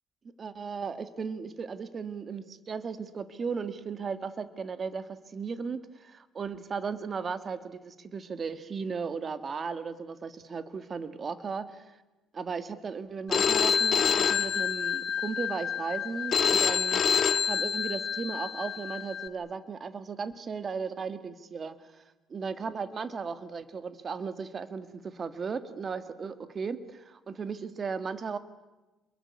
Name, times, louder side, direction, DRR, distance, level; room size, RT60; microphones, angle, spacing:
voice 1, 0.4-11.9 12.3-17.0 17.4-22.0 22.3-28.4, right 5 dB, 35° right, 12 dB, 1.8 m, -36 dB
Telephone, 13.3-19.3, left 7 dB, 40° left, 1.6 m, -27 dB
28.5 x 22.0 x 9.6 m, 1.1 s
cardioid pair, 130°, 0 cm